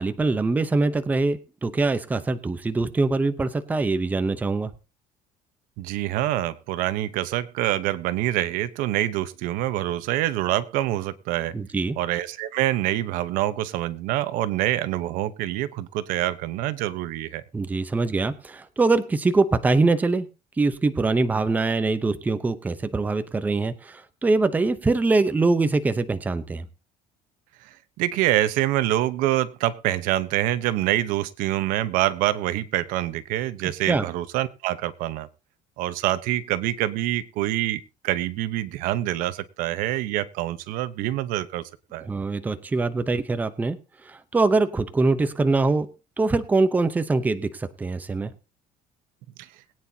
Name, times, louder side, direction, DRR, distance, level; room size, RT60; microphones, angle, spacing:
voice 1, 0.0-4.7 11.5-12.0 17.5-20.3 20.6-26.7 33.9-34.1 42.0-43.8 44.0-45.9 46.2-48.3, right 3 dB, 10° right, 11 dB, 0.7 m, -23 dB
voice 2, 5.8-11.5 12.0-17.4 27.6-27.7 28.0-35.3 35.8-41.6 41.9-42.1 49.4-49.5, right 14 dB, 70° right, 14 dB, 1.0 m, -26 dB
21.5 x 9.3 x 2.8 m, 0.29 s
cardioid pair, 160°, 14 cm